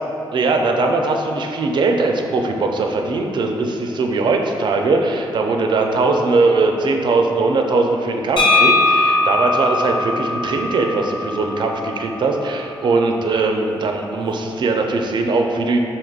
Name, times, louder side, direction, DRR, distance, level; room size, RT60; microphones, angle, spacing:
voice 1, 0.3-15.8, right 3 dB, 55° right, 3 dB, 0.4 m, -20 dB
sound 1, 8.4-12.1, left 2 dB, 55° left, 0.6 m, -19 dB
4.6 x 2.9 x 2.4 m, 2.7 s
supercardioid pair, 55°, 9 cm